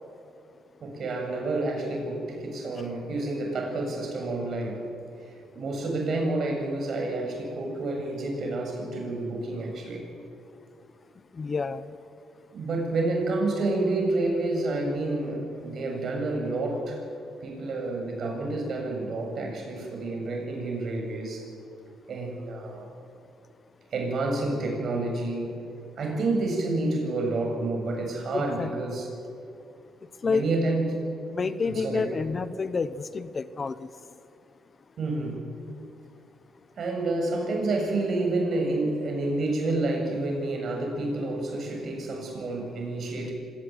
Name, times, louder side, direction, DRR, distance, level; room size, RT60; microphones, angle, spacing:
voice 1, 0.8-4.9 5.6-10.1 12.5-17.0 17.4-21.4 22.1-22.9 23.9-25.6 26.0-29.1 30.3-31.0 31.7-32.1 35.0-35.4 36.8-43.3, right 2 dB, 55° right, 2 dB, 7.1 m, -29 dB
voice 2, 11.4-11.9 28.3-28.7 30.2-30.5 31.3-33.9, left 4 dB, 35° left, 14 dB, 1.0 m, -29 dB
25.5 x 17.5 x 9.3 m, 2.5 s
cardioid pair, 90°, 0 cm